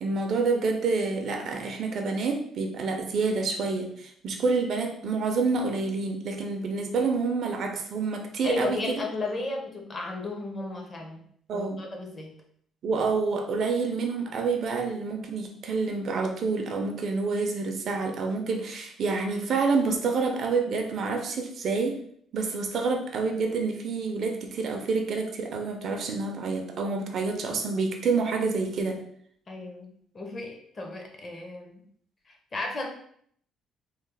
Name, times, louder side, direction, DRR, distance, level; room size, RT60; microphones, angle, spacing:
voice 1, 0.0-9.0 11.5-11.8 12.8-22.0 22.3-29.0, right 4 dB, 45° right, 4 dB, 0.4 m, -28 dB
voice 2, 8.4-11.2 11.5-12.3 29.5-31.8 32.3-32.9, left 2 dB, 25° left, 1 dB, 0.5 m, -34 dB
3.0 x 2.0 x 3.3 m, 0.63 s
cardioid pair, 160°, 0 cm